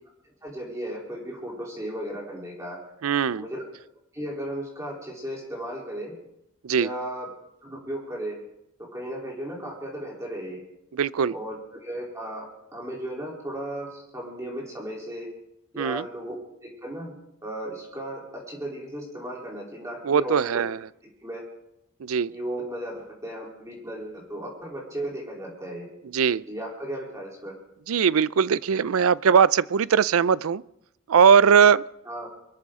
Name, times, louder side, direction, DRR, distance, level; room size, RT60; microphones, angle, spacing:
voice 1, 0.2-2.8 3.3-3.7 4.1-6.1 6.7-7.3 7.6-8.4 8.9-10.6 11.3-15.3 15.7-17.2 17.4-20.6 21.0-21.4 22.3-25.9 26.5-27.5 32.1-32.3, right 1 dB, 15° right, -3 dB, 3.4 m, -35 dB
voice 2, 3.0-3.4 6.6-6.9 11.0-11.3 15.8-16.0 20.0-20.8 22.0-22.3 26.1-26.4 27.9-30.6 31.1-31.8, right 7 dB, 90° right, 19 dB, 0.4 m, -20 dB
24.0 x 14.0 x 3.7 m, 0.81 s
head